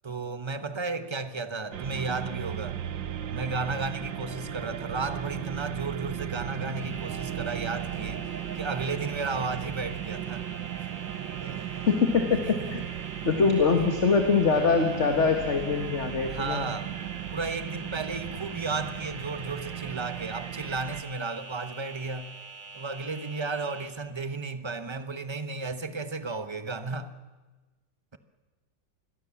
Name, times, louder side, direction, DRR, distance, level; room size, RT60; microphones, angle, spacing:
voice 1, 0.0-2.8 3.3-8.3 8.6-10.5 10.8-10.9 11.4-11.7 12.6-12.7 13.7-13.8 16.3-16.9 17.3-22.3 22.7-27.1, right 3 dB, 20° right, 10 dB, 1.0 m, -33 dB
sound 1, 1.7-21.0, right 10 dB, 80° right, 1.8 m, -36 dB
sound 2, 6.8-23.9, right 3 dB, 65° right, 3.7 m, -45 dB
voice 2, 11.9-12.8 13.2-16.7, left 5 dB, 40° left, 5 dB, 2.0 m, -23 dB
27.0 x 21.5 x 7.3 m, 1.2 s
omnidirectional pair, 2.0 m